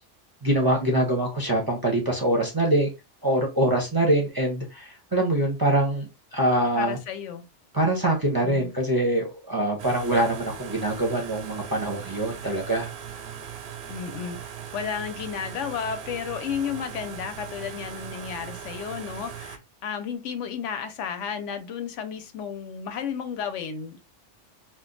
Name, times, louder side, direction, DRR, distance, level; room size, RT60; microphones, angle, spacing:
voice 1, 0.4-2.9 3.2-7.0 7.7-12.9, right 1 dB, 25° right, 0.6 m, -24 dB
voice 2, 6.8-7.4 8.4-8.7 13.9-24.1, left 7 dB, 80° left, 0.9 m, -33 dB
sound 1, 9.8-19.6, right 8 dB, 65° right, 0.7 m, -39 dB
2.5 x 2.2 x 3.8 m
omnidirectional pair, 1.2 m